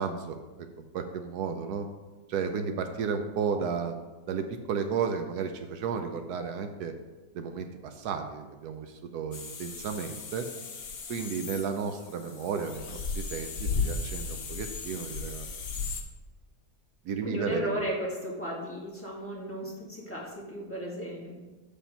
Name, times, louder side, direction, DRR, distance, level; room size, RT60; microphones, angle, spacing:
voice 1, 0.0-1.9 2.3-3.9 4.3-6.9 7.3-10.5 11.1-15.5 17.0-17.8, right 6 dB, 80° right, 6 dB, 1.1 m, -33 dB
sound 1, 9.3-16.0, left 4 dB, 80° left, 1.5 m, -36 dB
voice 2, 17.2-21.4, equal, 10° left, -7 dB, 2.1 m, -35 dB
7.2 x 5.1 x 5.6 m, 1.2 s
omnidirectional pair, 1.7 m